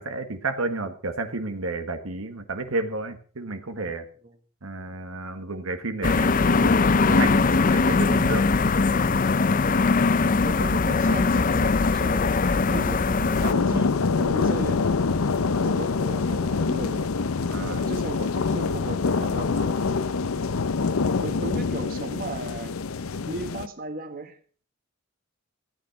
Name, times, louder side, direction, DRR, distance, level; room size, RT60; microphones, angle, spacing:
voice 1, 0.0-4.0 4.6-8.5 12.7-13.0 17.5-17.9, right 3 dB, 80° right, 7 dB, 1.4 m, -32 dB
sound 1, 6.0-13.5, left 4 dB, 40° left, 0.5 m, -21 dB
voice 2, 10.3-12.2 12.7-14.8 15.3-17.1 17.6-20.0 21.2-22.7 23.3-24.4, right 2 dB, 45° right, 7 dB, 1.6 m, -36 dB
sound 2, 13.3-23.7, left 4 dB, 80° left, 0.6 m, -25 dB
14.5 x 9.1 x 5.9 m, 0.41 s
head